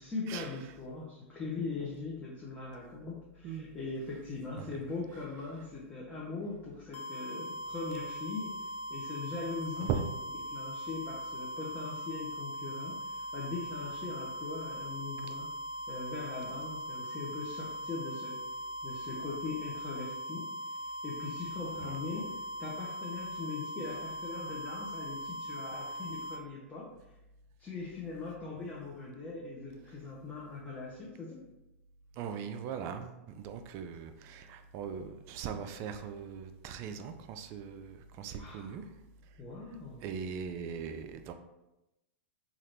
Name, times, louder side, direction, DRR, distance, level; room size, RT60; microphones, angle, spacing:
voice 1, 0.0-8.6 8.9-9.9 10.4-15.5 15.9-18.4 18.8-20.5 21.0-22.3 22.6-26.9 27.6-31.4 38.4-38.7 39.4-40.0, left 4 dB, 20° left, -5 dB, 0.6 m, -40 dB
sound 1, 6.9-26.4, equal, 90° left, 0.4 m, -40 dB
voice 2, 32.2-38.8 40.0-41.3, right 7 dB, 40° right, 7 dB, 0.3 m, -39 dB
2.8 x 2.4 x 3.2 m, 0.96 s
hypercardioid pair, 110°, 7 cm